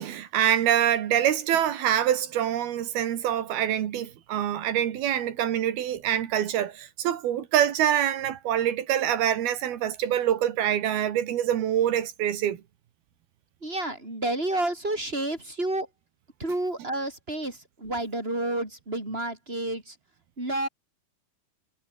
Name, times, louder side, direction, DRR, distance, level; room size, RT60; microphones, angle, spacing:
voice 1, 0.0-12.6, right 10 dB, 85° right, 3.8 m, -25 dB
voice 2, 13.6-15.9 16.4-20.0 20.4-20.7, right 1 dB, 15° right, 7.6 m, -30 dB
omnidirectional pair, 4.3 m